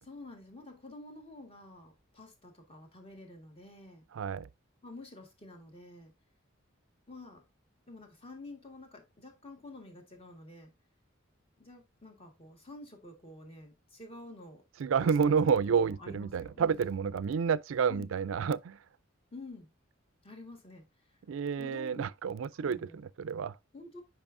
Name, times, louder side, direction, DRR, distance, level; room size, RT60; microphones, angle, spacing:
voice 1, 0.0-4.1 4.8-6.1 7.1-7.5 7.9-10.7 11.6-14.6 15.0-16.8 17.9-18.1 19.3-19.7 20.2-20.8 21.1-21.2 21.6-22.0 22.6-23.0 23.7-24.0, left 2 dB, 30° left, 1.7 m, -49 dB
voice 2, 4.1-4.5 14.8-18.8 21.3-23.6, right 6 dB, 70° right, 0.4 m, -29 dB
8.8 x 5.4 x 2.6 m
head